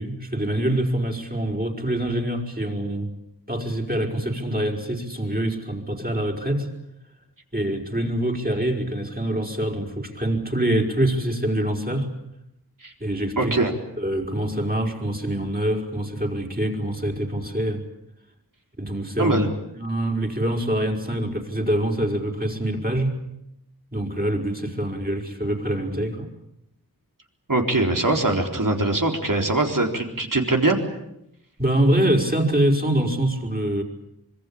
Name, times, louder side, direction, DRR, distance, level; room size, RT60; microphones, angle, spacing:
voice 1, 0.0-3.1 3.5-6.7 7.5-12.1 13.0-13.6 14.0-17.8 18.8-19.4 19.7-23.1 23.9-26.3 31.6-33.8, right 1 dB, 25° right, 2 dB, 5.0 m, -25 dB
voice 2, 13.4-13.7 19.2-19.5 27.5-30.8, right 2 dB, 55° right, 3 dB, 4.0 m, -22 dB
25.5 x 22.5 x 8.7 m, 0.83 s
wide cardioid pair, 40°, 38 cm